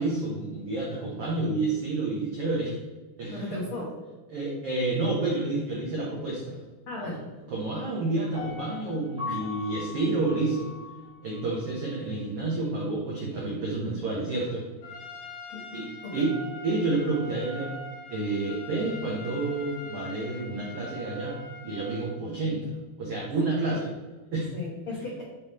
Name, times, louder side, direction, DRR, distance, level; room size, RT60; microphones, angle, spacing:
voice 1, 0.0-2.8 3.2-3.6 4.3-6.6 7.0-7.2 7.5-10.7 11.2-14.7 15.7-15.9 16.1-16.3 16.6-17.7 18.1-22.6 23.0-23.9 24.3-24.5, right 2 dB, 80° right, -4 dB, 1.3 m, -29 dB
voice 2, 3.3-3.9 6.9-7.2 9.3-9.4 15.5-16.3 23.5-23.6 24.5-25.2, left 2 dB, 75° left, -4 dB, 1.2 m, -36 dB
Piano, 8.3-11.4 11.9-12.0, left 5 dB, 25° right, 0.5 m, -39 dB
Trumpet, 14.8-22.1, left 1 dB, 60° left, 3.3 m, -43 dB
8.1 x 3.4 x 4.3 m, 1.3 s
omnidirectional pair, 4.4 m